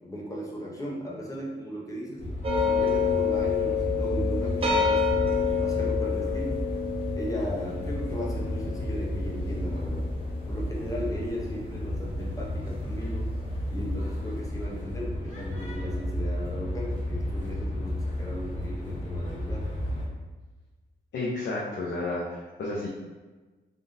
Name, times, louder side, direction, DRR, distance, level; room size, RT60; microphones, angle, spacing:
voice 1, 0.0-2.3 2.6-6.6 7.2-10.1 10.5-13.3 13.7-19.7, equal, 20° left, -3 dB, 0.7 m, -37 dB
sound 1, 2.2-20.1, left 1 dB, 40° left, 0.9 m, -32 dB
sound 2, 2.4-11.6, left 5 dB, 30° right, 0.5 m, -28 dB
voice 2, 21.1-22.9, left 2 dB, 70° left, -6 dB, 0.6 m, -31 dB
3.5 x 2.5 x 2.6 m, 1.3 s
wide cardioid pair, 115°, 19 cm